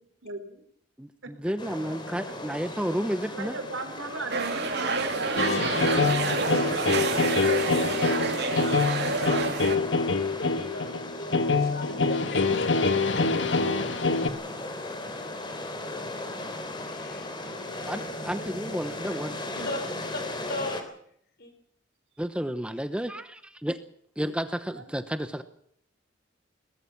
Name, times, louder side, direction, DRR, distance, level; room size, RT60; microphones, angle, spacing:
voice 1, 0.2-0.6 1.2-1.5 2.9-5.5 6.1-6.5 19.4-19.7 24.7-24.9, right 2 dB, 85° right, 7 dB, 4.1 m, -38 dB
voice 2, 1.0-3.5 17.9-19.4 22.2-23.8 24.2-25.4, equal, 5° right, 10 dB, 0.9 m, -31 dB
sound 1, 1.6-20.8, left 2 dB, 25° left, 3.5 m, -37 dB
sound 2, 4.3-9.8, right 4 dB, 55° right, 2.7 m, -28 dB
sound 3, 5.4-14.3, left 3 dB, 70° left, 1.7 m, -25 dB
voice 3, 10.3-13.3 13.5-13.6 16.8-18.9 19.6-20.2 20.5-20.8 21.4-21.5 22.9-23.0, left 2 dB, 55° left, 6 dB, 5.5 m, -39 dB
22.0 x 20.0 x 6.0 m, 0.68 s
head